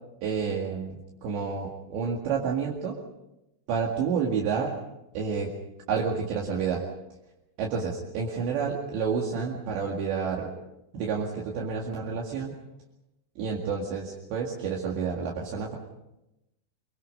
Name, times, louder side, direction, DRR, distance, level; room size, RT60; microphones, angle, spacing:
voice 1, 0.2-1.0 1.2-3.0 3.7-4.8 5.1-5.5 5.9-6.8 7.6-10.5 10.9-12.5 13.4-15.8, right 6 dB, 70° right, -2 dB, 4.3 m, -29 dB
25.0 x 24.0 x 5.4 m, 0.92 s
omnidirectional pair, 5.3 m